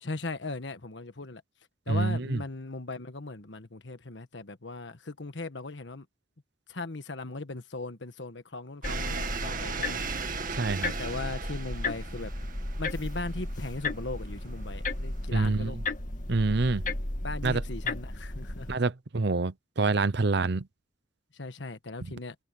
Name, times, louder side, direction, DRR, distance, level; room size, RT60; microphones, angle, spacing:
voice 1, 0.0-1.4 1.9-6.0 6.7-10.0 11.0-12.3 12.8-15.8 16.8-18.7 21.3-22.3, left 3 dB, 70° left, 1.4 m, -38 dB
voice 2, 1.9-2.4 10.5-10.9 15.3-15.8 16.3-16.8 17.4-17.6 18.7-20.7 22.0-22.1, right 3 dB, 65° right, 0.8 m, -27 dB
sound 1, 8.8-18.7, left 2 dB, 45° left, 2.1 m, -35 dB
sound 2, 8.8-15.3, right 5 dB, 45° right, 2.0 m, -38 dB
head